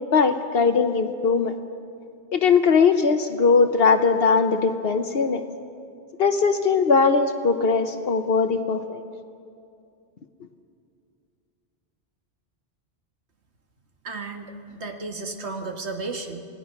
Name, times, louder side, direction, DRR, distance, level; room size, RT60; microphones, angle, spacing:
voice 1, 0.1-1.5 2.3-5.4 6.2-9.0, left 5 dB, 65° left, 8 dB, 1.1 m, -20 dB
voice 2, 14.0-16.4, right 3 dB, 80° right, 4 dB, 1.8 m, -33 dB
27.0 x 18.0 x 5.9 m, 2.5 s
omnidirectional pair, 1.1 m